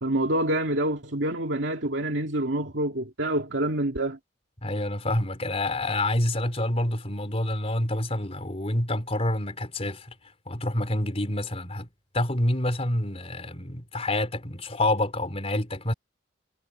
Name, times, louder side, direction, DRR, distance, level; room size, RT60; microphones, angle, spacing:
voice 1, 0.0-4.2, right 1 dB, 70° right, 2.5 m, -27 dB
voice 2, 4.6-10.1 10.5-11.9 12.1-15.9, left 1 dB, 35° left, 4.0 m, -27 dB
head